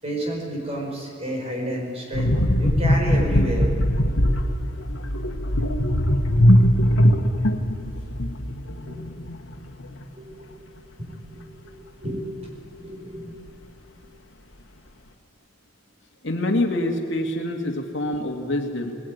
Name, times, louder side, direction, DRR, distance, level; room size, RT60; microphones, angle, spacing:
voice 1, 0.0-3.7 7.8-7.9 8.9-9.1 10.1-10.5 11.0-13.4, right 1 dB, 30° right, 0 dB, 5.7 m, -31 dB
sound 1, 2.1-9.5 9.8-10.0, equal, 90° left, 1.5 m, -20 dB
voice 2, 16.2-19.0, left 1 dB, 65° left, 2 dB, 2.4 m, -26 dB
20.5 x 20.0 x 9.6 m, 2.2 s
head